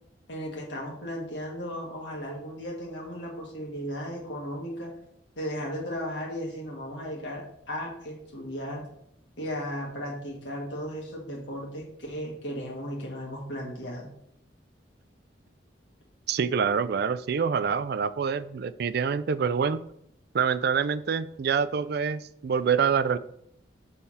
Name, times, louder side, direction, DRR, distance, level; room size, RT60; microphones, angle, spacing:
voice 1, 0.3-4.9 5.4-8.8 9.4-14.1, equal, 75° left, -2 dB, 1.7 m, -35 dB
voice 2, 16.3-19.8 20.3-23.2, right 6 dB, 60° right, 15 dB, 0.4 m, -26 dB
6.9 x 3.5 x 5.5 m, 0.72 s
head